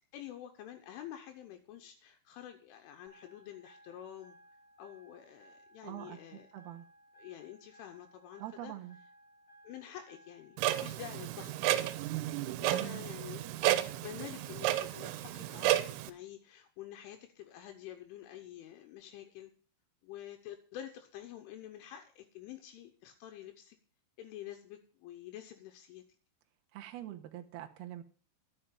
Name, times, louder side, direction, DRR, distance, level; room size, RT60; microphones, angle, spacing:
voice 1, 0.1-4.4 4.8-6.5 7.2-8.7 9.6-11.9 12.6-13.6 14.0-19.5 20.0-23.8 24.2-26.0, left 11 dB, 80° left, 5 dB, 3.3 m, -48 dB
sound 1, 3.1-10.7, right 1 dB, 20° left, 2.1 m, -61 dB
voice 2, 5.8-6.9 8.4-9.0 12.7-13.2 26.7-28.0, right 13 dB, 70° right, 3 dB, 2.6 m, -44 dB
Clock, 10.6-16.1, right 14 dB, 90° right, 3.5 m, -32 dB
11.5 x 6.7 x 8.9 m, 0.43 s
omnidirectional pair, 5.7 m